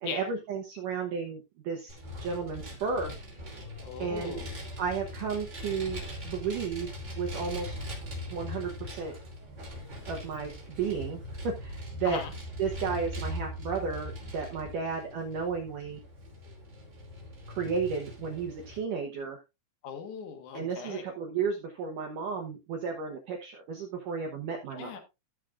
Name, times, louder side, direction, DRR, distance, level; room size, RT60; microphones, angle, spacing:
voice 1, 0.0-1.9 2.2-3.2 4.0-4.5 4.8-7.7 8.3-9.2 10.1-12.2 12.6-16.0 17.5-19.4 20.5-25.0, right 5 dB, 75° right, 1.9 m, -33 dB
Vehicle, 1.9-18.8, left 1 dB, 20° right, 2.6 m, -41 dB
voice 2, 3.8-4.5 12.0-12.3 19.8-21.1 24.7-25.0, left 7 dB, 60° left, 2.2 m, -39 dB
16.5 x 6.5 x 2.5 m
omnidirectional pair, 5.4 m